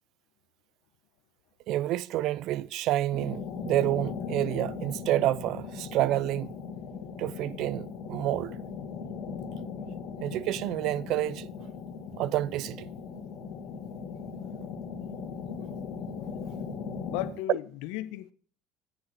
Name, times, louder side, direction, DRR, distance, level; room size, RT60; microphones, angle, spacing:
voice 1, 1.7-6.5 7.2-8.6 10.2-11.5 12.2-12.9 17.5-17.6, right 14 dB, 55° right, 0.6 m, -29 dB
sound 1, 3.1-17.3, left 5 dB, 65° left, 4.6 m, -38 dB
voice 2, 17.1-18.3, left 15 dB, 85° left, 1.4 m, -35 dB
25.0 x 10.0 x 4.6 m
cardioid pair, 160°, 0 cm